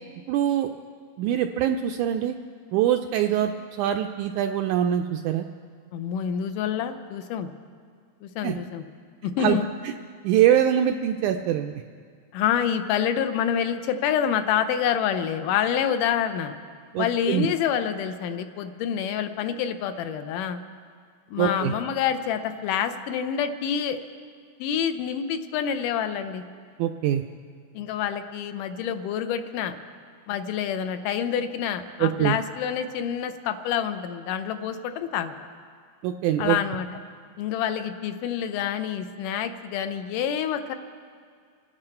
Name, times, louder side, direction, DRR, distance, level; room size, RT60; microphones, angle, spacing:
voice 1, 0.3-0.7 1.2-2.4 2.7-3.5 3.8-5.5 8.4-8.6 9.4-9.6 9.8-9.9 10.2-11.8 16.9-17.5 21.4-21.7 26.8-27.2 32.0-32.4 36.0-36.6, right 10 dB, 85° right, 5 dB, 1.8 m, -23 dB
voice 2, 5.9-7.5 8.2-8.8 9.2-9.7 12.3-16.5 17.0-20.6 21.3-24.0 24.6-26.4 27.7-29.7 30.3-35.3 36.4-36.9 37.4-40.8, left 8 dB, 80° left, 9 dB, 2.1 m, -27 dB
26.0 x 9.9 x 4.4 m, 2.1 s
omnidirectional pair, 3.9 m